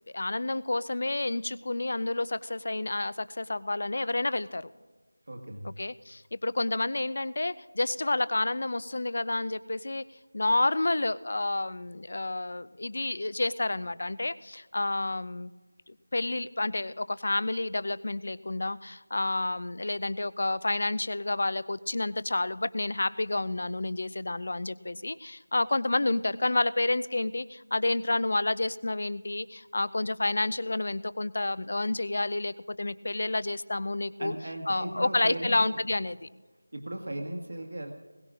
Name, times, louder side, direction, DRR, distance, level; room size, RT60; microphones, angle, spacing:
voice 1, 0.1-4.7 5.6-10.0 10.3-15.5 15.9-34.3 34.7-36.3, left 2 dB, 45° left, 17 dB, 0.4 m, -29 dB
voice 2, 5.3-5.7 34.2-35.6 36.7-37.9, right 1 dB, 55° right, 3 dB, 1.6 m, -36 dB
21.0 x 17.5 x 2.5 m, 1.3 s
figure-of-eight pair, 170°, 0 cm